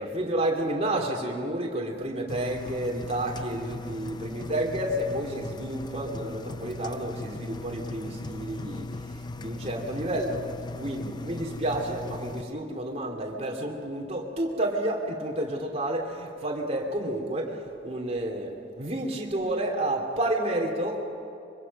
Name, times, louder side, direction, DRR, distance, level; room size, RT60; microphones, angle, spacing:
voice 1, 0.0-8.9 9.4-10.5 10.8-17.6 17.8-21.1, right 1 dB, 35° right, 1 dB, 3.0 m, -30 dB
Engine, 2.3-12.4, left 2 dB, 25° left, 0.5 m, -38 dB
25.0 x 24.5 x 5.5 m, 2.7 s
head